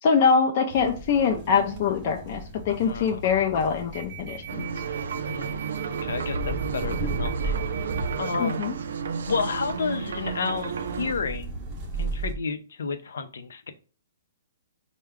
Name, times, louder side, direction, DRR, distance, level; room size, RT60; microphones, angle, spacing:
voice 1, 0.0-4.7 8.4-8.7, left 6 dB, 35° left, 0.4 m, -23 dB
sound 1, 0.7-12.3, right 2 dB, 20° right, 0.6 m, -35 dB
voice 2, 2.8-3.2 5.3-7.6 8.2-8.6 9.2-11.5 12.0-13.7, left 5 dB, 85° left, 0.6 m, -31 dB
sound 2, 4.5-11.1, right 7 dB, 70° right, 0.4 m, -32 dB
4.6 x 2.1 x 3.5 m
hypercardioid pair, 175°, 0 cm